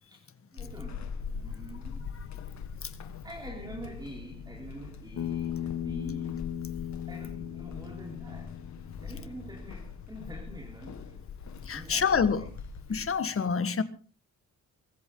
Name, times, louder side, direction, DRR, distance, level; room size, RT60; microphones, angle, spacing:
voice 1, 0.5-2.3 3.0-6.5 7.1-8.6 9.0-11.3 11.7-12.5 13.0-13.2, right 1 dB, 15° right, 4.2 m, -46 dB
Walk footsteps / Squeak, 0.6-13.2, left 6 dB, 65° left, 1.9 m, -42 dB
Bass guitar, 5.2-9.5, left 10 dB, 80° left, 2.3 m, -37 dB
voice 2, 11.7-12.4 12.9-13.8, left 6 dB, 45° left, 1.6 m, -27 dB
23.0 x 14.0 x 3.8 m
cardioid pair, 115°, 31 cm